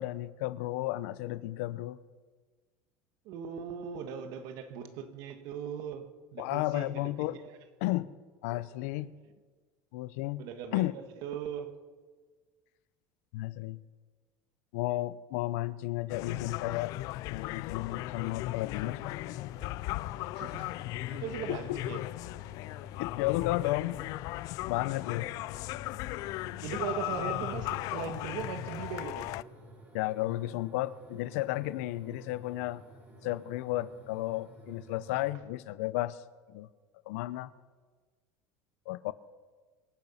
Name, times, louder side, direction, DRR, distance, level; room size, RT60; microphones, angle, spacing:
voice 1, 0.0-2.0 6.4-7.4 7.8-8.1 8.4-9.1 9.9-10.4 10.7-10.9 13.3-13.8 14.7-16.9 17.3-19.1 21.5-21.8 23.0-24.0 24.5-25.3 29.9-32.8 33.2-36.2 36.5-36.7 37.0-37.5 38.9-39.1, left 17 dB, 80° left, 0.7 m, -33 dB
voice 2, 3.2-7.6 8.5-8.6 10.4-11.8 20.3-22.0 26.4-29.3, right 8 dB, 55° right, 1.7 m, -39 dB
sound 1, 16.1-29.4, left 18 dB, 50° left, 0.4 m, -37 dB
sound 2, 18.8-35.3, right 1 dB, 25° right, 3.6 m, -54 dB
25.5 x 9.3 x 5.7 m
cardioid pair, 155°, 8 cm